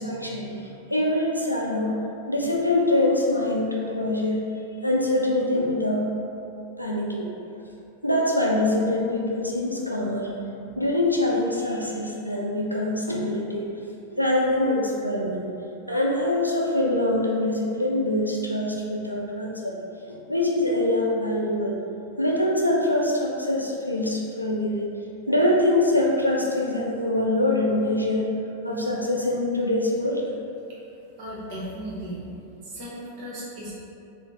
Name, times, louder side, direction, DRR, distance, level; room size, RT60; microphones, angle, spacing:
voice 1, 0.0-1.9 2.3-4.4 4.8-6.1 6.8-7.3 8.0-10.3 10.8-13.6 14.1-15.4 15.9-19.7 20.3-21.8 22.2-24.8 25.3-28.2 28.6-30.2, left 1 dB, 90° left, -3 dB, 0.4 m, -24 dB
voice 2, 31.2-32.2 32.6-33.7, right 1 dB, 45° right, -6 dB, 1.0 m, -36 dB
3.8 x 2.1 x 3.6 m, 2.7 s
figure-of-eight pair, 90°, 0 cm